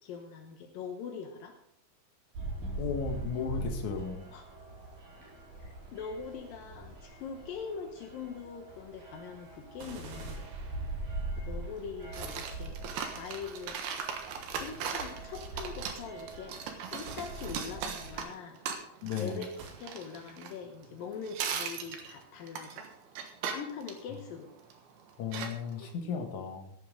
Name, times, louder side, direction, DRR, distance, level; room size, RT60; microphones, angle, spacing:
voice 1, 0.0-1.5 4.3-4.4 5.6-10.5 11.4-12.8 13.2-13.8 14.6-16.6 16.9-18.6 19.2-19.5 19.8-22.8 23.5-24.5 26.4-26.5, left 6 dB, 85° left, 4 dB, 1.9 m, -42 dB
sound 1, 2.3-18.2, right 2 dB, 45° right, 5.5 m, -42 dB
voice 2, 2.8-4.2 19.0-19.4 25.2-26.7, left 6 dB, 60° left, 3 dB, 2.0 m, -35 dB
sound 2, 9.8-11.4 14.5-15.4 17.1-18.0 19.6-20.5, right 4 dB, 85° right, 5.6 m, -50 dB
sound 3, 12.1-21.0 21.2-24.8 25.3-25.9, right 7 dB, 65° right, 2.8 m, -38 dB
15.5 x 11.5 x 3.8 m, 0.72 s
omnidirectional pair, 5.9 m